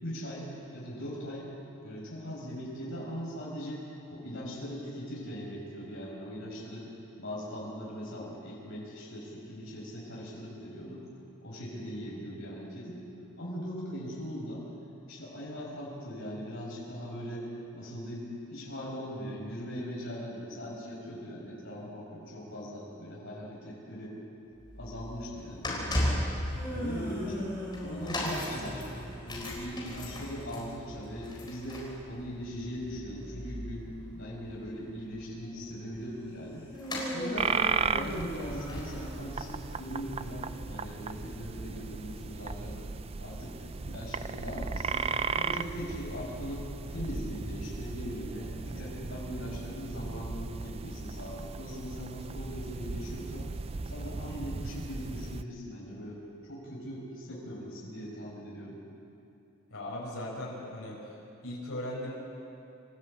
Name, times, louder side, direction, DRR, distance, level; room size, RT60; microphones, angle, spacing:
voice 1, 0.0-1.5 1.8-3.8 4.1-6.9 7.2-11.0 11.4-13.0 13.4-14.7 15.1-17.5 17.7-24.2 24.8-26.3 26.7-27.5 27.8-36.7 37.1-37.5 37.9-42.8 43.2-53.5 53.8-56.2 56.5-58.8, equal, 55° left, -5 dB, 5.7 m, -40 dB
sound 1, 24.6-40.9 41.2-41.4 42.2-42.3, left 1 dB, 20° left, 4.1 m, -38 dB
sound 2, 26.3-29.5 36.7-39.6, equal, 10° right, 6.9 m, -39 dB
sound 3, 37.3-55.4, right 5 dB, 25° right, 0.4 m, -36 dB
voice 2, 59.7-61.1 61.4-62.1, left 1 dB, 75° left, -5 dB, 5.8 m, -38 dB
27.0 x 14.5 x 8.7 m, 2.9 s
head